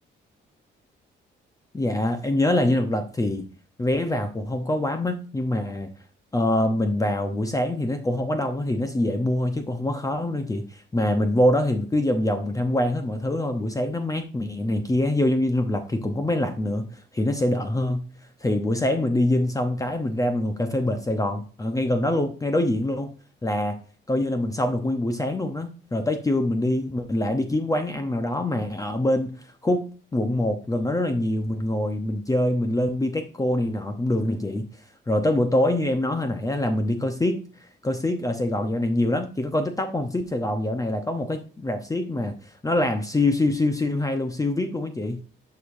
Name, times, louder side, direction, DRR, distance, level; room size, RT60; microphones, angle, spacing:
voice 1, 1.7-3.5 3.8-5.9 6.3-18.1 18.4-23.1 23.4-23.8 24.1-29.9 30.1-34.7 35.1-37.4 37.8-45.2, left 1 dB, 15° left, 6 dB, 0.8 m, -24 dB
10.5 x 4.8 x 2.6 m, 0.38 s
cardioid pair, 90°, 20 cm